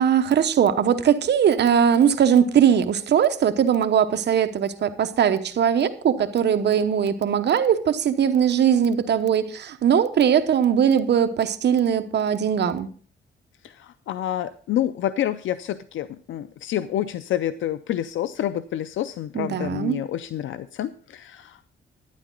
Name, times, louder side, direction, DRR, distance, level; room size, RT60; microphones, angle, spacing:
voice 1, 0.0-12.9 19.3-20.0, right 8 dB, 60° right, 0.9 m, -20 dB
voice 2, 13.6-21.7, left 11 dB, 80° left, 0.5 m, -28 dB
11.5 x 10.0 x 3.8 m
cardioid pair, 120°, 20 cm